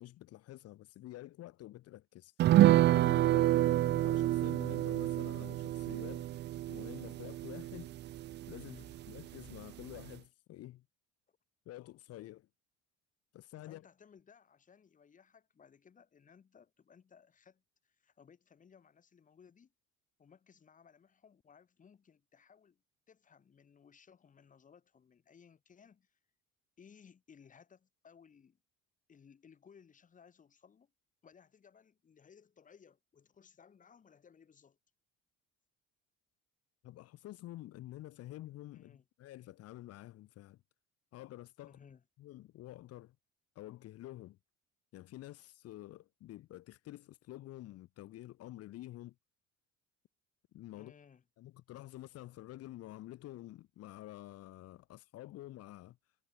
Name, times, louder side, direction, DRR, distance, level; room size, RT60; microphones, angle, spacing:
voice 1, 0.0-2.5 2.9-3.6 3.9-6.3 6.7-7.9 8.5-10.8 11.7-12.5 13.3-13.9 36.8-40.6 41.1-41.8 42.2-43.2 43.6-44.4 44.9-49.1 50.5-50.9 51.4-56.2, left 15 dB, 55° left, 2.0 m, -49 dB
sound 1, 2.4-9.2 9.5-9.6 9.9-10.1, right 14 dB, 35° right, 0.4 m, -28 dB
voice 2, 3.3-3.8 8.6-9.0 11.3-11.4 13.6-19.7 20.2-22.8 23.1-26.2 26.8-28.6 29.1-30.9 31.2-34.8 38.7-39.0 41.6-42.0 50.7-51.2, left 7 dB, 25° left, 5.1 m, -61 dB
cardioid pair, 160°, 30 cm